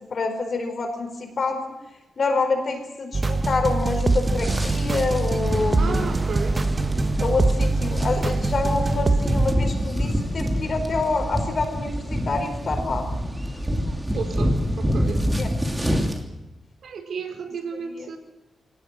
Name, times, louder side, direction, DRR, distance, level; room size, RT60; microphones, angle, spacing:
voice 1, 0.1-1.6 2.2-6.1 7.2-13.0 15.4-15.5 18.0-18.1, left 3 dB, 45° left, 5 dB, 4.8 m, -27 dB
sound 1, 3.1-9.5, right 3 dB, 25° right, 1.2 m, -23 dB
sound 2, 3.8-16.2, equal, 10° right, 2.9 m, -27 dB
voice 2, 5.8-6.6 14.1-15.3 16.8-18.2, right 5 dB, 70° right, 7 dB, 4.3 m, -33 dB
24.5 x 18.5 x 7.8 m, 0.97 s
wide cardioid pair, 155°, 0 cm